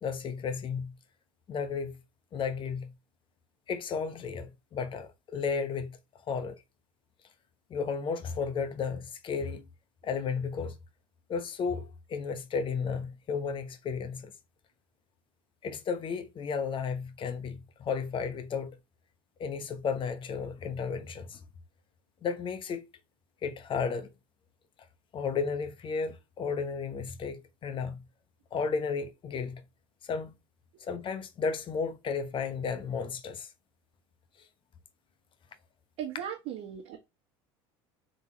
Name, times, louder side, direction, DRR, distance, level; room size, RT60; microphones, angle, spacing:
voice 1, 0.0-0.9 1.5-2.0 2.3-2.9 3.7-6.0 6.3-6.6 7.7-9.6 10.0-10.8 11.3-14.3 15.6-18.8 19.4-21.4 22.2-22.8 23.4-24.1 25.1-28.0 28.5-29.6 30.0-30.3 30.8-33.5, left 5 dB, 40° left, 1.0 m, -33 dB
voice 2, 36.0-37.0, right 9 dB, 60° right, 1.5 m, -37 dB
4.0 x 3.7 x 2.9 m
hypercardioid pair, 85°, 13 cm